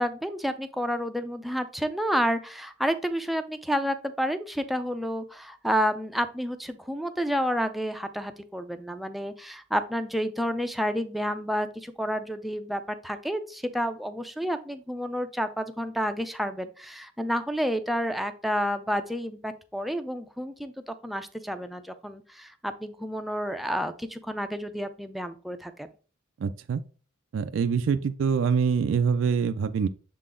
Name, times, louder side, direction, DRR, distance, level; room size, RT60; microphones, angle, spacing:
voice 1, 0.0-25.9, equal, ahead, 0.4 m, -30 dB
voice 2, 26.4-26.8 27.3-29.9, right 6 dB, 75° right, 0.3 m, -25 dB
6.6 x 3.9 x 3.7 m
head